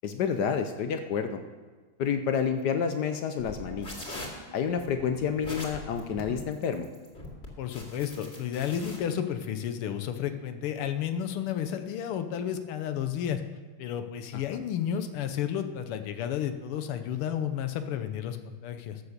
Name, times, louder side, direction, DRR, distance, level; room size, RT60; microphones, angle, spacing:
voice 1, 0.0-1.4 2.0-4.1 4.5-6.9 14.3-14.4, left 7 dB, 70° left, 8 dB, 1.0 m, -29 dB
sound 1, 3.5-9.0, left 1 dB, 30° left, 2.7 m, -42 dB
voice 2, 7.6-13.4 13.8-19.0, left 9 dB, 90° left, 9 dB, 1.8 m, -32 dB
13.0 x 7.3 x 6.6 m, 1.4 s
omnidirectional pair, 2.4 m